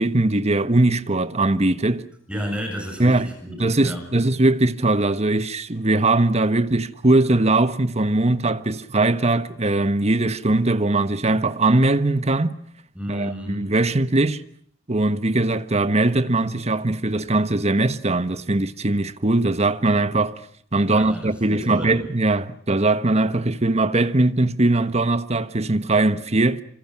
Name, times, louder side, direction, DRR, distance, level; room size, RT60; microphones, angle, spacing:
voice 1, 0.0-2.1 3.0-3.3 3.6-12.6 13.1-14.4 14.9-20.4 20.7-26.6, right 2 dB, 35° right, 1.3 m, -20 dB
voice 2, 2.3-4.0 13.0-13.6 20.9-22.0, equal, 5° right, 7.6 m, -31 dB
29.5 x 26.5 x 6.0 m
head